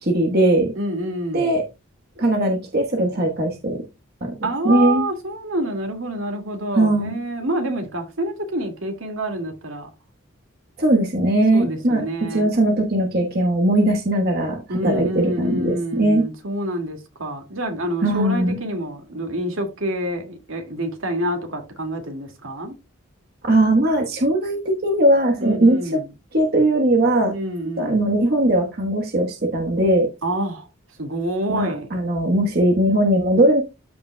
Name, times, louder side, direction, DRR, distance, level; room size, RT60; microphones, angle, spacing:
voice 1, 0.0-0.7 1.3-1.6 2.2-3.8 4.2-4.3 4.6-5.0 6.7-7.2 10.8-12.0 12.3-16.3 18.0-18.6 23.4-25.8 26.3-27.3 27.8-30.1 31.5-33.6, right 1 dB, 45° right, 1.3 m, -19 dB
voice 2, 0.8-1.6 4.4-9.9 11.5-12.6 14.7-22.8 25.4-26.1 27.3-28.0 30.2-30.7 31.0-31.9, right 1 dB, 75° right, 2.1 m, -27 dB
13.5 x 5.1 x 2.2 m
head